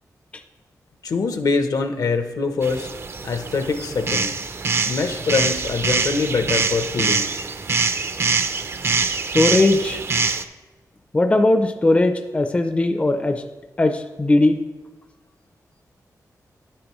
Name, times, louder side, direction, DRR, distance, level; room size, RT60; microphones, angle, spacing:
voice 1, 1.0-2.9 3.2-4.4 4.8-7.3, left 4 dB, 70° left, 8 dB, 0.7 m, -23 dB
sound 1, 2.6-10.4, right 4 dB, 40° right, 0.4 m, -24 dB
voice 2, 9.1-10.0 11.1-13.4 13.8-14.6, left 2 dB, 20° left, 8 dB, 0.4 m, -19 dB
10.0 x 8.7 x 3.0 m, 1.2 s
wide cardioid pair, 115°, 6 cm